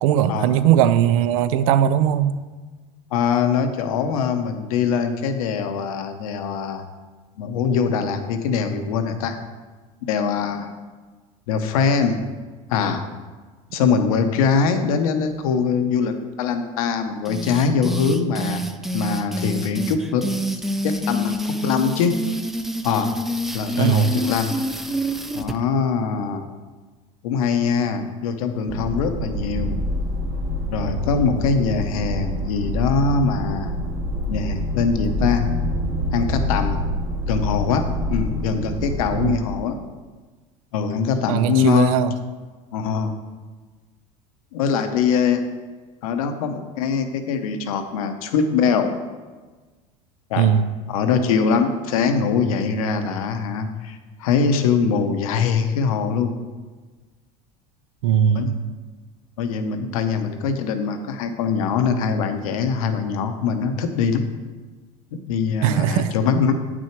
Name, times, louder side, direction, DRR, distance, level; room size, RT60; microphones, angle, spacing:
voice 1, 0.0-2.3 13.8-13.9 23.8-24.1 39.1-39.4 41.3-42.1 50.4-50.7 58.0-58.6 65.6-66.1, right 10 dB, 80° right, 13 dB, 0.5 m, -19 dB
voice 2, 3.1-6.8 7.4-9.4 10.1-10.7 11.5-12.2 12.7-13.0 13.7-18.6 18.9-20.3 20.8-22.1 22.8-23.2 23.5-24.6 25.3-26.4 27.2-29.8 30.7-33.7 34.3-35.5 36.1-36.9 37.3-39.8 40.7-42.0 42.7-43.1 44.5-45.4 46.0-48.9 50.3-50.5 50.9-56.3 58.3-58.6 59.4-64.2 65.1-66.5, left 6 dB, 90° left, 7 dB, 0.9 m, -22 dB
sound 1, 17.2-25.6, equal, ahead, 0.4 m, -27 dB
sound 2, 28.7-39.6, left 1 dB, 35° right, 1.2 m, -26 dB
8.7 x 6.2 x 4.5 m, 1.3 s
supercardioid pair, 110°, 18 cm